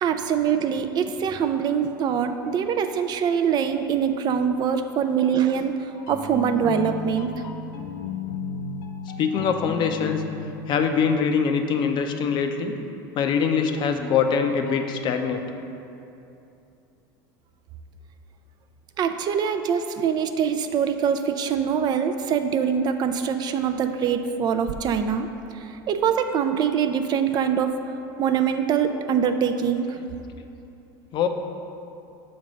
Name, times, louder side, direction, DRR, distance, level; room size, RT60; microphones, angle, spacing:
voice 1, 0.0-5.7 6.1-7.3 19.0-25.3 25.6-27.7 28.2-30.0, right 7 dB, 40° right, 7 dB, 0.4 m, -23 dB
sound 1, 5.9-12.6 14.1-14.9, left 5 dB, 85° left, 0.6 m, -35 dB
voice 2, 9.2-10.2 10.7-12.8 13.1-15.4 31.1-31.3, left 6 dB, 45° left, 6 dB, 0.5 m, -23 dB
6.4 x 3.4 x 5.2 m, 2.8 s
supercardioid pair, 105°, 11 cm